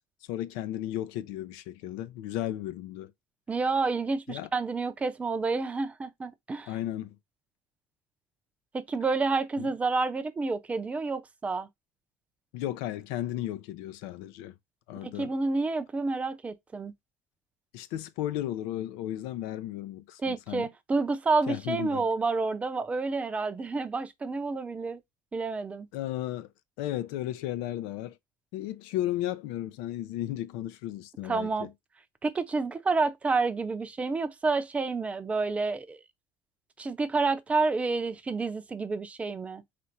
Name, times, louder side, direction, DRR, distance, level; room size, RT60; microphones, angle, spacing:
voice 1, 0.3-3.1 4.3-4.5 6.7-7.2 9.6-9.7 12.5-14.5 14.9-15.3 17.7-20.7 21.5-22.1 25.9-26.5 26.8-28.2 28.5-31.7, left 13 dB, 85° left, 0.6 m, -34 dB
voice 2, 3.5-6.7 8.7-11.7 15.0-16.9 20.2-25.0 25.3-25.9 31.2-31.7 32.2-36.0 36.8-39.6, right 3 dB, 20° right, 0.5 m, -29 dB
4.2 x 2.6 x 4.3 m
cardioid pair, 135°, 7 cm